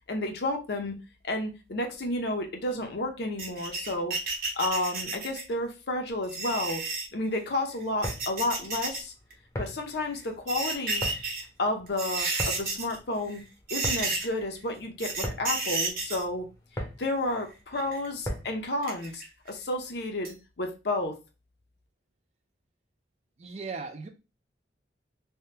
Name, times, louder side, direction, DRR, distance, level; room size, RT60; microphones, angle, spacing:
voice 1, 0.1-0.9 1.2-4.2 4.6-6.8 7.1-9.1 9.6-11.0 11.6-13.4 13.7-16.5 17.0-21.1, left 2 dB, 60° left, 0.6 m, -31 dB
sound 1, 3.4-5.5 6.2-7.0 7.8-9.0 9.3-9.4 10.2-11.4 11.9-13.0 13.3-13.4 13.7-14.4 15.0-16.2 17.3-18.1 18.8-19.5 19.8-19.9 20.2-20.3, right 4 dB, 50° right, 0.8 m, -32 dB
sound 2, 7.8-18.7, equal, 15° left, 0.7 m, -39 dB
voice 2, 23.4-24.1, right 4 dB, 35° right, 0.5 m, -37 dB
3.4 x 2.2 x 2.7 m
head